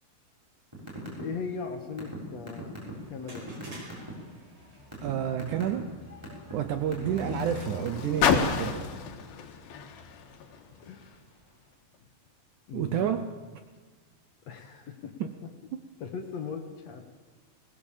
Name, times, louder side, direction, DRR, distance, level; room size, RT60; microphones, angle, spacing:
sound 1, 0.7-1.2 1.5-4.1 4.6-5.1 5.4-5.8 6.2-6.5 6.9-8.2, equal, 5° right, 5.9 m, -40 dB
voice 1, 1.0-2.8 3.1-3.5 6.9-7.2 10.8-11.2 12.7-13.2 14.5-15.5 16.0-17.1, left 6 dB, 55° left, 5 dB, 2.2 m, -39 dB
sound 2, 2.9-11.7, right 1 dB, 45° right, 5.8 m, -54 dB
Car, 4.6-11.2 12.0-12.1, left 7 dB, 80° left, 3.1 m, -32 dB
voice 2, 5.0-5.9 6.5-8.9 12.7-13.3 15.2-15.4, right 10 dB, 75° right, 9 dB, 1.9 m, -30 dB
20.5 x 18.5 x 7.3 m, 1.4 s
omnidirectional pair, 4.2 m